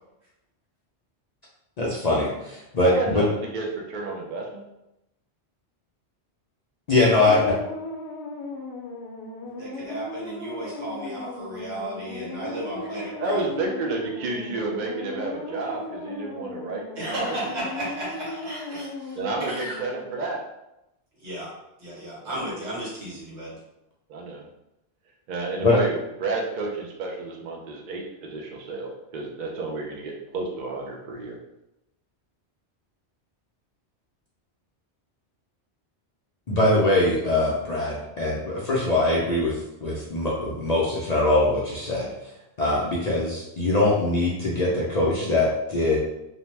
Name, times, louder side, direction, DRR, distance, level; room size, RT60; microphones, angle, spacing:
voice 1, 1.8-3.2 6.9-7.4 25.6-25.8 36.5-39.5 39.8-42.1 42.6-46.0, left 2 dB, 55° left, -5 dB, 0.5 m, -22 dB
voice 2, 2.8-4.7 13.2-17.4 19.2-20.4 22.2-22.5 24.1-24.5 25.3-25.9 26.2-31.4, right 3 dB, 60° right, 0 dB, 0.5 m, -31 dB
sound 1, 7.0-20.3, left 2 dB, 80° left, 0.9 m, -37 dB
voice 3, 9.6-13.4 16.9-19.7 21.2-21.5 21.8-23.5, right 1 dB, 80° right, -5 dB, 1.4 m, -34 dB
2.7 x 2.1 x 3.1 m, 0.90 s
omnidirectional pair, 1.1 m